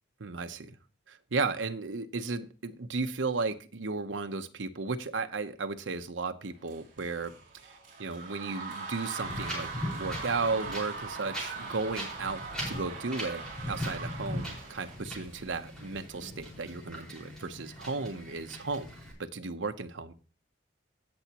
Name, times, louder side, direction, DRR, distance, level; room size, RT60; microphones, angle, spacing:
voice 1, 0.2-0.8 1.1-7.3 7.6-18.9 19.2-20.1, right 4 dB, 85° right, 8 dB, 0.8 m, -34 dB
sound 1, 6.6-14.9, right 4 dB, 45° right, 4.1 m, -41 dB
Wind, 9.2-19.1, equal, 5° left, 4.8 m, -40 dB
16.5 x 7.0 x 2.9 m, 0.35 s
head